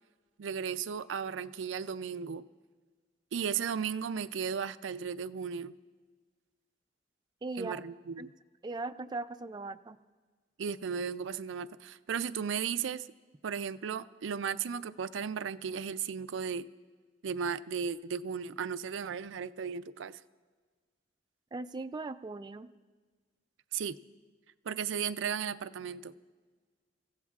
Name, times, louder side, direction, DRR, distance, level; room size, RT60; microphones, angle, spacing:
voice 1, 0.4-2.4 3.3-5.7 7.6-8.3 10.6-13.1 13.4-16.7 17.2-20.2 23.7-24.0 24.7-26.1, right 7 dB, 90° right, 14 dB, 0.4 m, -35 dB
voice 2, 7.4-7.8 8.2-8.3 8.6-10.0 21.5-22.7, right 3 dB, 25° right, 9 dB, 0.3 m, -39 dB
29.5 x 15.5 x 2.4 m, 1.5 s
head